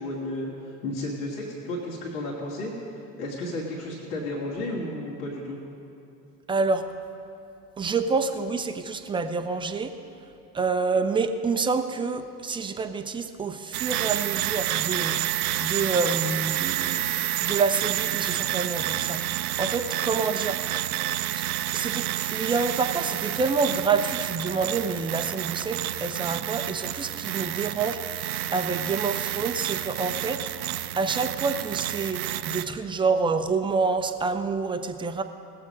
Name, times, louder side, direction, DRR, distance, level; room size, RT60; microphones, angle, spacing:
voice 1, 0.0-2.7 3.2-5.6, left 1 dB, 65° left, -4 dB, 2.0 m, -33 dB
voice 2, 6.5-6.9 7.8-9.9 10.5-20.6 21.3-21.5 21.7-35.2, right 4 dB, 10° right, 8 dB, 0.5 m, -28 dB
sound 1, 13.7-32.6, right 13 dB, 65° right, 0.7 m, -29 dB
18.5 x 7.4 x 5.2 m, 2.7 s
hypercardioid pair, 80°, 48 cm